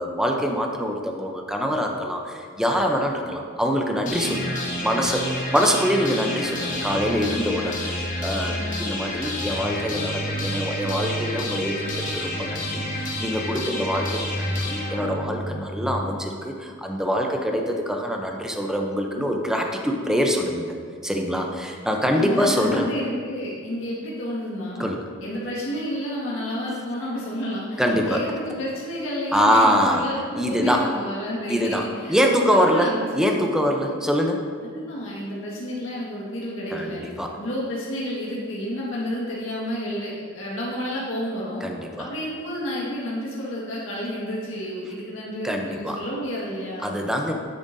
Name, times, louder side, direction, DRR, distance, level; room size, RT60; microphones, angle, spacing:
voice 1, 0.0-20.7 21.0-22.9 24.8-25.1 27.8-28.2 29.3-30.1 30.3-30.9 31.5-34.4 36.7-37.4 41.6-42.1 45.4-46.0 46.8-47.3, equal, 5° right, 2 dB, 0.6 m, -24 dB
sound 1, 4.1-16.0, left 1 dB, 40° left, 1.4 m, -29 dB
voice 2, 4.2-4.6 22.1-24.8 25.2-32.2 32.5-33.4 34.7-37.0 37.4-41.6 42.0-47.0, equal, 70° left, -6 dB, 1.8 m, -30 dB
10.0 x 7.7 x 2.7 m, 2.1 s
head